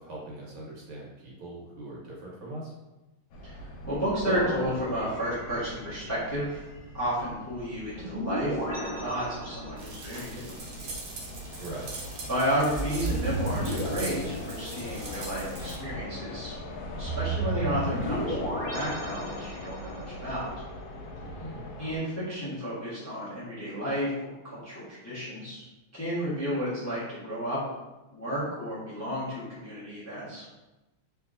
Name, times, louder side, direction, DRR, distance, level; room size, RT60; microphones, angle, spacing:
voice 1, 0.0-2.7 11.6-11.9 21.2-21.6, right 1 dB, 85° right, -4 dB, 1.8 m, -41 dB
sound 1, 3.3-22.0, left 1 dB, 75° left, 1.3 m, -41 dB
voice 2, 3.4-6.6 6.9-10.9 11.5-11.6 12.3-16.5 16.9-20.5 21.8-25.6 25.9-27.8 28.1-30.5, equal, 25° left, -10 dB, 0.3 m, -32 dB
sound 2, 4.2-5.8 8.0-10.0 12.7-15.2 17.0-20.0, right 1 dB, 10° right, 0.9 m, -34 dB
sound 3, 9.8-15.8, right 3 dB, 65° right, 1.0 m, -42 dB
3.4 x 2.9 x 2.4 m, 1.1 s
omnidirectional pair, 2.3 m